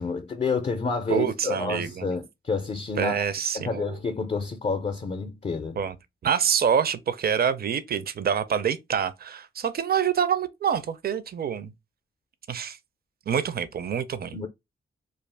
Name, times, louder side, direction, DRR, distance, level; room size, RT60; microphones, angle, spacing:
voice 1, 0.0-3.2 3.5-5.8 14.3-14.5, left 4 dB, 35° left, 0.5 m, -29 dB
voice 2, 1.1-2.1 3.0-4.0 5.8-6.0 6.2-11.7 12.5-12.8 13.3-14.4, right 7 dB, 50° right, 0.4 m, -26 dB
2.4 x 2.3 x 3.3 m
cardioid pair, 65°, 21 cm